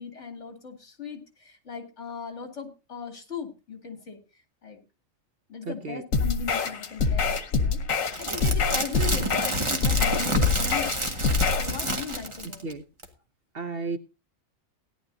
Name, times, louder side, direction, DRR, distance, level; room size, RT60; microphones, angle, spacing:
voice 1, 0.0-4.2 4.6-4.8 5.5-11.0 11.6-12.7, left 5 dB, 60° left, 4 dB, 2.9 m, -38 dB
voice 2, 5.6-6.0 12.4-12.8 13.5-14.0, right 3 dB, 50° right, 9 dB, 0.9 m, -33 dB
sound 1, 6.1-11.7, left 4 dB, 80° left, 1.6 m, -25 dB
sound 2, 8.1-12.7 13.0-13.1, right 1 dB, 20° right, 1.8 m, -29 dB
17.5 x 11.0 x 2.7 m, 0.29 s
omnidirectional pair, 1.4 m